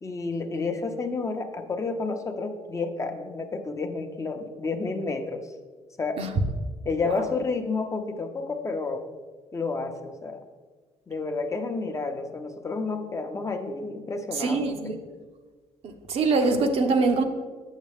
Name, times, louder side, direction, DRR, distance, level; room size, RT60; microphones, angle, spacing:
voice 1, 0.0-5.5 6.0-6.3 6.8-9.0 9.5-10.4 11.1-14.9, left 3 dB, 25° left, 0.7 m, -30 dB
voice 2, 14.3-15.0 15.8-17.2, right 3 dB, 65° right, 0.7 m, -24 dB
7.3 x 6.3 x 3.5 m
cardioid pair, 90°, 11 cm